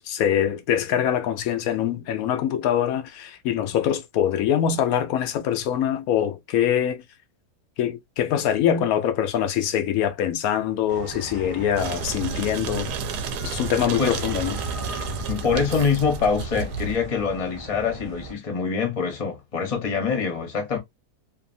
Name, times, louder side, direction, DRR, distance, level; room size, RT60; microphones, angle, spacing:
voice 1, 0.0-7.0 7.8-12.9 13.4-14.6, left 10 dB, 70° left, 0.9 m, -24 dB
sound 1, 10.9-18.3, right 2 dB, 35° right, 0.5 m, -37 dB
sound 2, 11.8-17.0, right 5 dB, 80° right, 1.1 m, -31 dB
voice 2, 15.3-20.8, left 5 dB, 30° left, 0.8 m, -25 dB
2.7 x 2.6 x 2.5 m
omnidirectional pair, 1.7 m